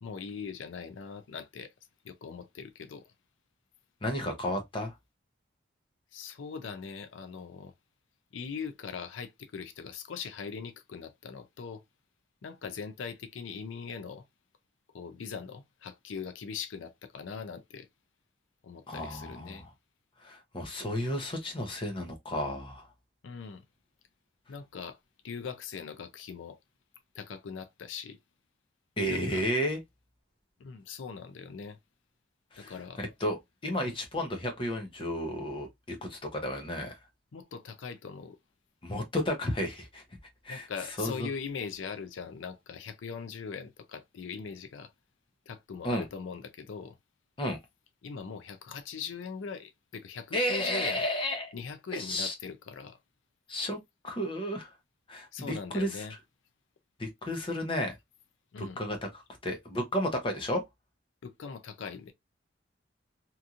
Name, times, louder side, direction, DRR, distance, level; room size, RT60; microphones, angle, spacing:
voice 1, 0.0-1.7 2.0-3.1 6.1-7.7 8.3-11.8 12.4-14.2 14.9-17.9 18.6-19.7 23.2-23.6 24.5-25.0 25.2-26.6 27.1-28.2 29.1-29.5 30.6-31.8 32.6-33.1 33.8-33.9 37.3-38.4 40.5-44.9 45.5-47.0 48.0-51.1 51.5-53.0 55.3-56.1 58.5-58.8 61.2-62.1, left 6 dB, 90° left, 0.5 m, -41 dB
voice 2, 4.0-4.9 18.9-19.7 20.2-22.9 29.0-29.8 32.5-37.0 38.8-40.0 40.4-40.7 41.0-41.3 45.8-46.0 47.4-47.6 50.3-51.5 51.9-52.3 53.5-53.8 54.0-54.7 55.1-55.9 57.0-58.0 58.6-60.6, equal, 25° left, 0.7 m, -32 dB
2.9 x 2.6 x 2.4 m
head